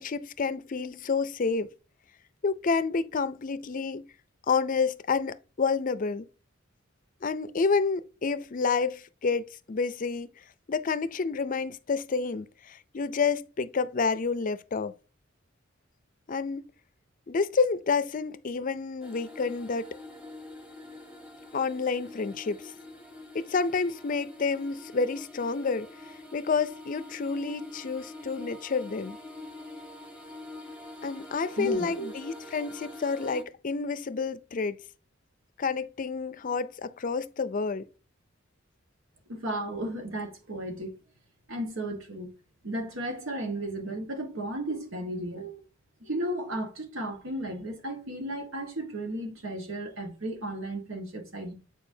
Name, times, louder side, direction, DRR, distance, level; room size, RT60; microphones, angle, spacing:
voice 1, 0.0-1.7 2.4-4.1 4.5-6.3 7.2-10.3 10.7-14.9 16.3-16.6 17.3-20.0 21.5-22.7 23.3-25.9 26.3-29.2 31.0-34.8 35.6-37.9, left 4 dB, 40° left, 0.4 m, -29 dB
sound 1, 19.0-33.4, left 2 dB, 5° right, 1.0 m, -45 dB
voice 2, 31.6-32.1 39.3-40.9 41.5-42.3 42.6-45.6 46.0-51.5, right 1 dB, 85° right, 1.6 m, -34 dB
8.9 x 4.6 x 2.7 m
head